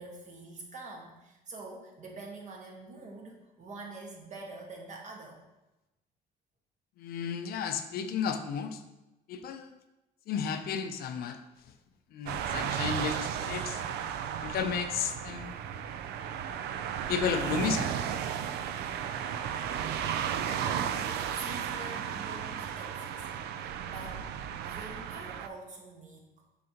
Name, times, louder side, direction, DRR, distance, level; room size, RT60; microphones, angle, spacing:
voice 1, 0.0-5.4 20.5-23.3 23.5-24.3 24.6-26.3, right 3 dB, 45° right, 0 dB, 1.5 m, -46 dB
voice 2, 7.0-8.8 9.3-9.7 10.3-11.4 12.1-13.8 14.4-15.5 17.1-18.4, left 7 dB, 65° left, 8 dB, 0.6 m, -33 dB
sound 1, 12.3-25.5, right 8 dB, 75° right, 0.4 m, -34 dB
6.4 x 5.3 x 2.9 m, 0.98 s
cardioid pair, 110°, 17 cm